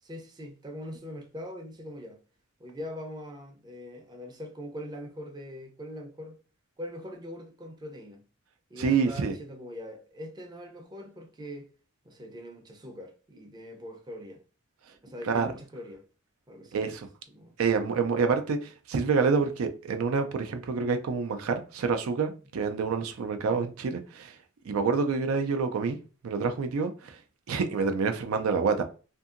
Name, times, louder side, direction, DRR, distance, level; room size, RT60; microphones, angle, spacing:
voice 1, 0.0-2.2 2.6-6.4 6.8-8.2 8.7-11.7 12.0-14.4 15.0-16.0 16.5-17.6, equal, 20° right, 0.5 m, -42 dB
voice 2, 8.8-9.3 15.3-15.5 16.7-17.1 17.6-24.3 24.7-26.0 26.2-27.2 27.5-28.8, right 5 dB, 80° right, 0.4 m, -27 dB
2.7 x 2.6 x 2.4 m
head